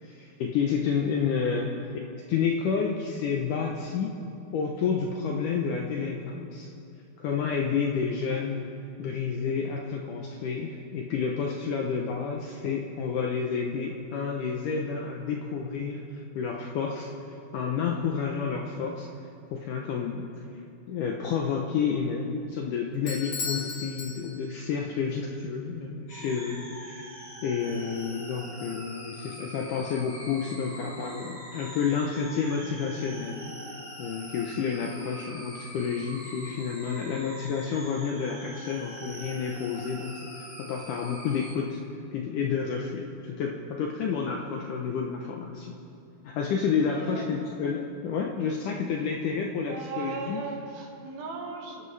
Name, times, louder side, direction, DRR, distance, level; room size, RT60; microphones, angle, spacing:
voice 1, 0.0-1.7 2.3-4.1 4.5-6.7 7.2-8.7 9.0-17.1 17.5-19.1 19.5-20.2 20.9-27.1 27.4-33.5 34.0-41.8 42.1-45.8 46.2-50.4, left 6 dB, 75° left, 0 dB, 1.9 m, -30 dB
Bell / Doorbell, 23.1-24.8, left 5 dB, 60° left, 1.3 m, -36 dB
sound 1, 26.1-41.5, equal, 30° left, 4.3 m, -44 dB
voice 2, 28.0-28.5 46.9-47.6 49.7-51.9, right 4 dB, 70° right, 0 dB, 3.4 m, -39 dB
27.5 x 11.0 x 3.3 m, 2.7 s
omnidirectional pair, 4.5 m